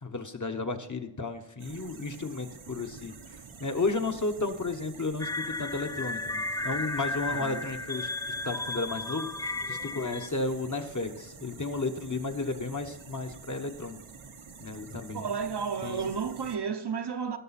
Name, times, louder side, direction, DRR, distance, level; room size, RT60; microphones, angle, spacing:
voice 1, 0.0-3.1 3.6-8.1 8.4-14.0 14.6-15.2 15.8-16.1, left 3 dB, 40° left, 1.2 m, -33 dB
sound 1, 1.6-16.6, right 5 dB, 85° right, 1.2 m, -48 dB
sound 2, 5.2-10.3, left 2 dB, 10° left, 0.3 m, -34 dB
voice 2, 7.3-7.6 15.1-17.4, right 6 dB, 55° right, 0.8 m, -32 dB
17.0 x 6.8 x 4.2 m
wide cardioid pair, 70°, 47 cm